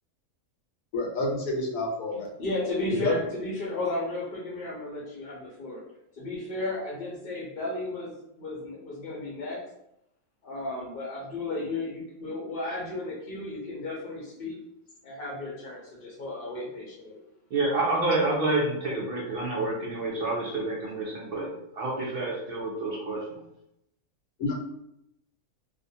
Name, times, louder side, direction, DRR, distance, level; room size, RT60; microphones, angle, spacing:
voice 1, 0.9-2.3 3.0-3.1 24.4-24.5, left 2 dB, 80° left, -1 dB, 1.1 m, -28 dB
voice 2, 2.4-5.8 6.2-8.1 8.4-9.6 10.4-14.6 15.0-17.1, left 2 dB, 55° left, -5 dB, 0.7 m, -34 dB
voice 3, 17.5-23.4, right 2 dB, 65° right, -3 dB, 0.6 m, -28 dB
2.4 x 2.1 x 2.7 m, 0.80 s
omnidirectional pair, 1.5 m